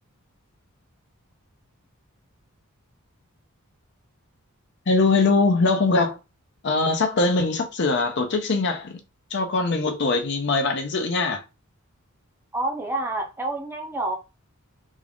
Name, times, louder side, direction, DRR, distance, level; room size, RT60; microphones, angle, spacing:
voice 1, 4.9-6.2 6.6-9.0 9.3-11.4, left 3 dB, 50° left, 0.6 m, -22 dB
voice 2, 12.5-14.2, right 2 dB, 10° right, 0.6 m, -28 dB
3.6 x 2.4 x 3.4 m
head